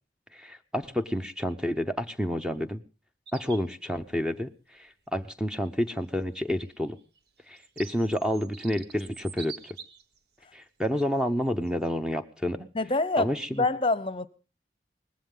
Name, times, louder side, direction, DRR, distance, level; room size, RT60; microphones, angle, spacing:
voice 1, 0.3-2.8 3.3-4.5 4.8-7.0 7.5-9.8 10.5-12.7 13.2-13.6, equal, 5° right, 0.8 m, -29 dB
sound 1, 3.3-3.7 5.2-5.3 6.4-10.2 10.8-11.0 11.7-11.9, right 6 dB, 65° right, 1.5 m, -46 dB
voice 2, 12.7-14.3, left 2 dB, 30° left, 0.8 m, -26 dB
20.0 x 15.5 x 3.8 m
head